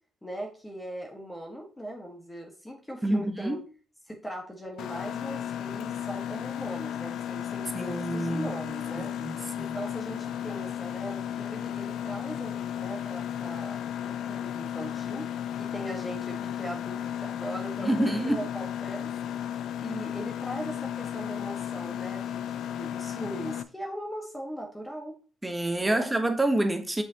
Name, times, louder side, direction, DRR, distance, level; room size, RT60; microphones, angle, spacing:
voice 1, 0.2-3.6 4.1-9.1 9.6-13.8 14.0-15.3 15.6-19.1 19.8-25.1 25.8-26.1, right 1 dB, 10° left, 1.5 m, -39 dB
voice 2, 3.0-3.6 7.7-9.8 17.8-18.4 25.4-27.0, right 1 dB, 15° right, 1.1 m, -28 dB
Mechanisms, 4.8-23.6, left 10 dB, 75° left, 0.4 m, -34 dB
6.8 x 5.6 x 2.9 m
cardioid pair, 90°, 0 cm